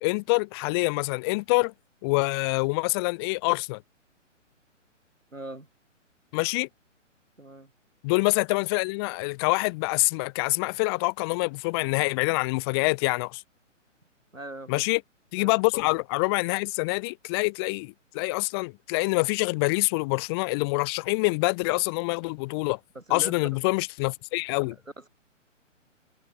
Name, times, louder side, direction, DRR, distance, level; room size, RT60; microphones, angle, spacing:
voice 1, 0.0-1.7 2.0-3.8 6.3-6.7 8.0-13.4 14.7-15.0 15.3-22.8 23.1-24.8, left 27 dB, 20° left, 1.3 m, -26 dB
voice 2, 5.3-5.7 7.4-7.7 14.3-14.8 15.4-15.5 22.9-23.6 24.6-25.1, right 2 dB, 85° right, 6.5 m, -41 dB
figure-of-eight pair, 130°, 38 cm